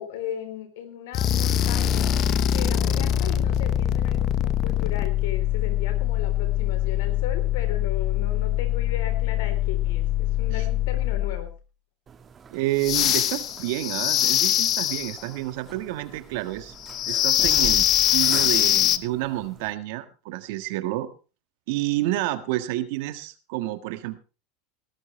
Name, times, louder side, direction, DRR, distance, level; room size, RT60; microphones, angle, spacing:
voice 1, 0.0-2.1 2.5-11.5, left 9 dB, 75° left, 8 dB, 3.5 m, -36 dB
sound 1, 1.1-11.6 12.8-15.2 16.8-19.0, left 11 dB, 50° left, 0.8 m, -23 dB
sound 2, 12.1-19.7, right 7 dB, 30° right, 1.5 m, -42 dB
voice 2, 12.5-16.7 17.1-21.1 21.7-24.2, right 16 dB, 70° right, 11 dB, 1.5 m, -29 dB
18.0 x 13.0 x 3.3 m, 0.33 s
hypercardioid pair, 100°, 0 cm